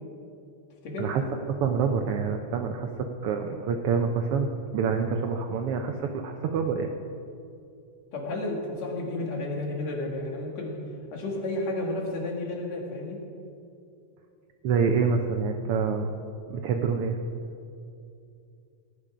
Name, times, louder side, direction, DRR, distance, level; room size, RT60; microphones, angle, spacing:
voice 1, 1.5-2.9 3.2-6.9 14.6-16.1 16.5-17.2, right 5 dB, 80° right, 4 dB, 1.3 m, -26 dB
voice 2, 8.1-10.8 11.1-13.2, left 2 dB, 65° left, -1 dB, 3.1 m, -32 dB
17.5 x 10.0 x 5.0 m, 2.6 s
omnidirectional pair, 3.4 m